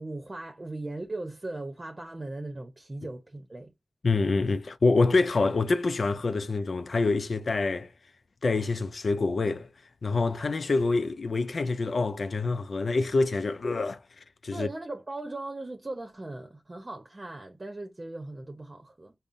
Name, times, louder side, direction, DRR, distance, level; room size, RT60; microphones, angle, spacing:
voice 1, 0.0-3.7 14.5-19.1, right 2 dB, 40° right, 0.7 m, -38 dB
voice 2, 4.0-7.9 8.4-9.7 10.0-14.0 14.4-14.7, left 3 dB, 80° left, 0.3 m, -26 dB
5.3 x 2.1 x 2.5 m
wide cardioid pair, 55°, 0 cm